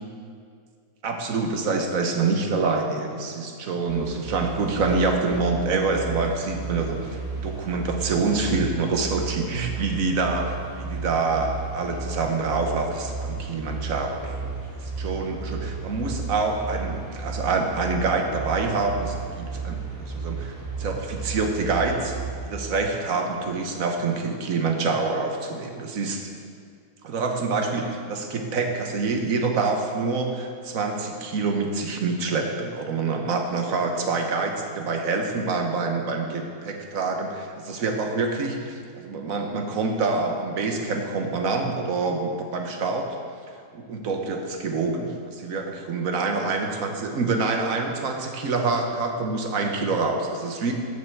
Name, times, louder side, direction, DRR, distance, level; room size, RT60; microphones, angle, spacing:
voice 1, 1.0-7.1 7.3-14.5 14.8-22.2 22.4-26.3 27.0-43.1 43.7-50.7, right 3 dB, 65° right, 3 dB, 1.4 m, -26 dB
sound 1, 3.9-22.3, right 4 dB, 85° right, 2.6 m, -33 dB
13.0 x 6.9 x 4.6 m, 2.1 s
omnidirectional pair, 1.6 m